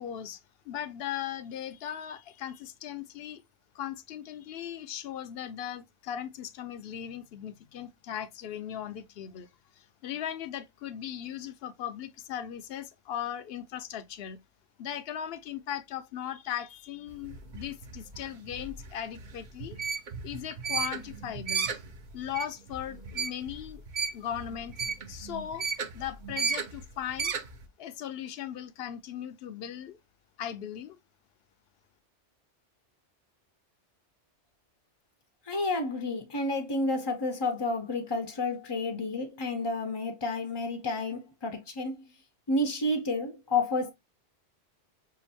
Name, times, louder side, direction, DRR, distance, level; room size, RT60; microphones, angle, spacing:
voice 1, 0.0-3.4 3.7-9.5 9.8-14.4 14.8-19.8 20.2-21.7 22.1-23.8 24.1-24.8 25.1-25.7 25.9-27.3 27.8-30.0 30.4-31.0, left 10 dB, 60° left, 0.7 m, -38 dB
sound 1, 17.1-27.6, right 5 dB, 50° right, 0.7 m, -34 dB
voice 2, 35.5-42.0 42.5-43.9, left 2 dB, 30° left, 0.5 m, -30 dB
5.6 x 2.5 x 2.7 m
omnidirectional pair, 1.2 m